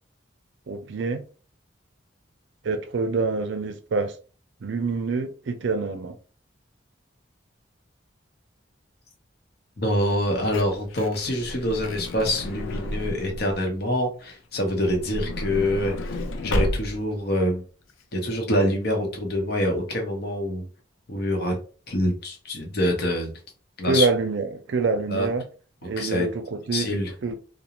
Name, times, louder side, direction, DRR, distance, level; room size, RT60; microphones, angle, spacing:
voice 1, 0.7-1.2 2.6-4.1 4.6-6.2 23.8-25.4 25.8-26.9 27.2-27.3, right 4 dB, 70° right, 0.4 m, -26 dB
voice 2, 9.8-17.6 18.1-20.6 21.1-21.6 21.9-23.3 23.8-24.1 25.1-25.3 26.0-26.3 26.7-27.1, left 1 dB, 55° left, 0.7 m, -25 dB
Truck / Door, 10.4-13.6 14.7-17.2 17.9-18.0 18.2-18.3, left 1 dB, 85° left, 0.4 m, -31 dB
2.4 x 2.0 x 2.8 m
head